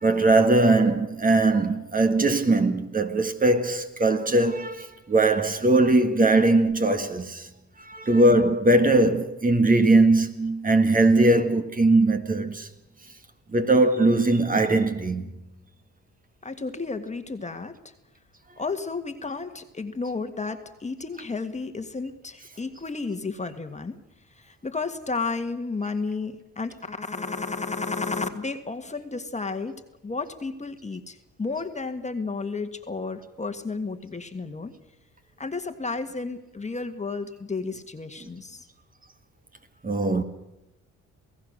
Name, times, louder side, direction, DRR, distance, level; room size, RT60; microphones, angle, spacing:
voice 1, 0.0-7.5 7.9-12.7 13.5-15.3 39.8-40.2, right 2 dB, 30° right, 1.9 m, -20 dB
voice 2, 16.4-17.8 18.6-24.0 24.4-34.7 35.4-38.7, left 4 dB, 25° left, 1.7 m, -32 dB
28.0 x 17.5 x 6.5 m
cardioid pair, 90°, 30 cm